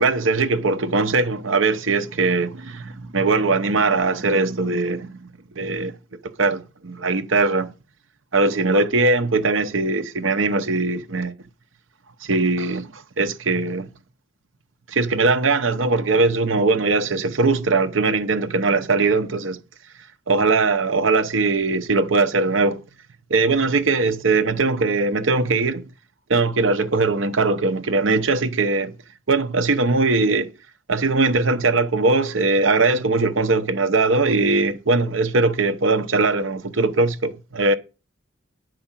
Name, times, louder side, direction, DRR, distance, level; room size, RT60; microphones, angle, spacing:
voice 1, 0.0-5.3 5.6-5.9 6.4-7.7 8.3-11.3 12.2-13.9 14.9-19.6 20.3-22.8 23.3-25.9 26.3-28.9 29.3-30.5 30.9-37.7, right 3 dB, 75° right, 0.9 m, -20 dB
9.4 x 5.0 x 7.3 m
head